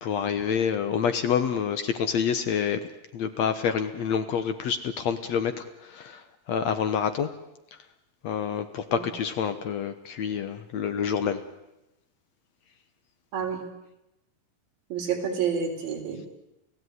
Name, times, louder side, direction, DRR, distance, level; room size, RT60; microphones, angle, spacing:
voice 1, 0.0-2.8 3.1-7.3 8.2-11.4, left 7 dB, 60° left, 10 dB, 2.0 m, -27 dB
voice 2, 13.3-13.6 14.9-16.3, right 7 dB, 85° right, 2 dB, 5.4 m, -29 dB
29.5 x 16.5 x 9.6 m, 0.92 s
omnidirectional pair, 4.0 m